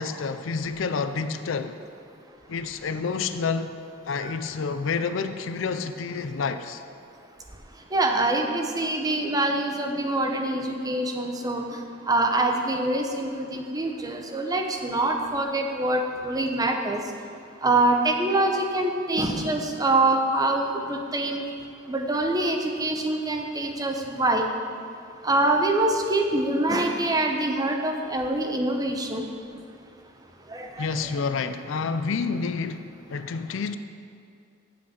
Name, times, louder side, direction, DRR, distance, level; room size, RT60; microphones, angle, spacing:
voice 1, 0.0-1.8 2.5-3.8 4.0-6.8 30.8-33.8, left 5 dB, 65° left, 10 dB, 0.4 m, -29 dB
voice 2, 7.9-11.6 12.1-17.0 17.6-21.4 21.9-24.4 25.2-29.3 30.5-31.1, right 2 dB, 20° right, 3 dB, 0.7 m, -25 dB
8.0 x 6.4 x 7.3 m, 2.5 s
head